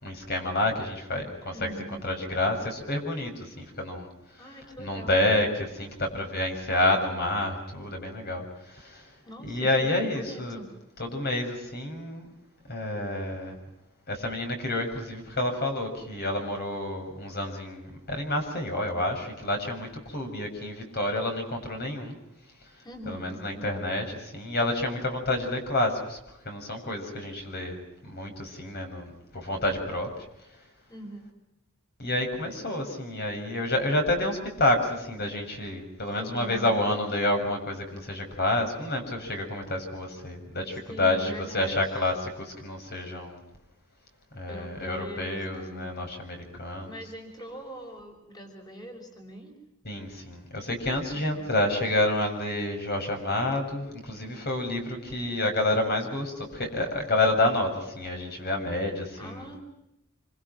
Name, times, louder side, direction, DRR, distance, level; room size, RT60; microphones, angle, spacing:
voice 1, 0.0-4.1 4.4-4.5 4.8-9.1 9.4-10.6 11.0-12.3 12.7-13.6 14.1-22.2 23.0-26.2 26.4-30.3 32.0-43.4 44.3-46.9 49.8-59.5, left 1 dB, 50° left, 4 dB, 6.8 m, -29 dB
voice 2, 1.5-2.0 4.4-5.2 9.3-10.7 22.8-23.9 30.9-31.4 36.2-36.8 40.9-42.1 44.5-45.9 46.9-49.6 51.1-51.5 59.2-59.6, equal, 20° left, 4 dB, 5.6 m, -42 dB
27.5 x 26.5 x 6.2 m, 0.86 s
head